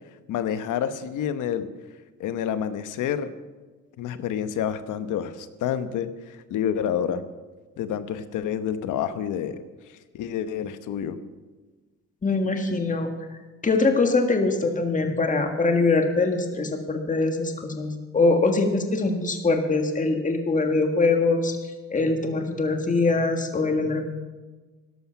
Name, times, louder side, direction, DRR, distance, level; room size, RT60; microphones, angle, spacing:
voice 1, 0.3-1.7 2.2-3.3 4.0-7.2 7.8-9.6 10.1-11.2, left 9 dB, 85° left, 11 dB, 1.1 m, -28 dB
voice 2, 12.2-13.1 13.6-24.0, left 3 dB, 25° left, 4 dB, 1.7 m, -23 dB
13.5 x 12.0 x 5.7 m, 1.3 s
cardioid pair, 90°, 30 cm